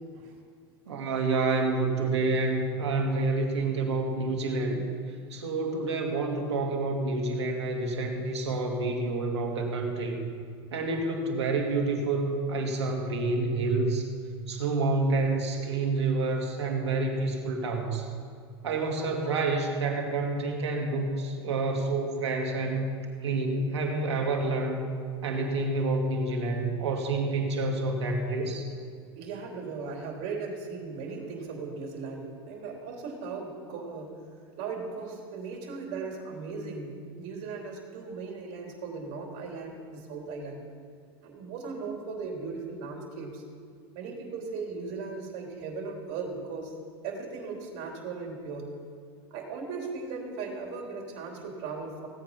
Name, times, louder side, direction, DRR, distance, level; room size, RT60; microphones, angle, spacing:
voice 1, 0.9-4.8 5.3-10.2 10.7-14.0 14.5-18.1 18.6-22.9 23.2-24.8 25.2-28.7, right 3 dB, 85° right, 2 dB, 2.2 m, -28 dB
voice 2, 29.2-34.1 34.6-40.6 41.2-43.4 43.9-46.7 47.0-48.7 49.3-52.1, right 4 dB, 55° right, 0 dB, 3.3 m, -37 dB
16.5 x 8.7 x 5.7 m, 2.2 s
hypercardioid pair, 110°, 14 cm